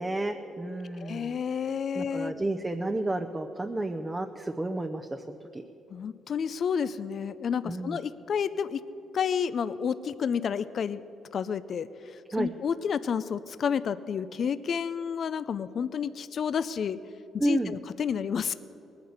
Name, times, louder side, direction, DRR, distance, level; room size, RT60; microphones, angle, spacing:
voice 1, 0.0-1.4 2.0-5.4 7.6-8.0 12.3-12.5 17.4-17.7, right 2 dB, 15° right, 5 dB, 0.7 m, -31 dB
voice 2, 0.9-2.3 5.9-8.8 9.1-11.0 11.3-11.9 12.4-17.0 17.3-18.5, left 7 dB, 55° left, 14 dB, 0.5 m, -30 dB
19.0 x 9.5 x 8.0 m, 3.0 s
cardioid pair, 90°, 0 cm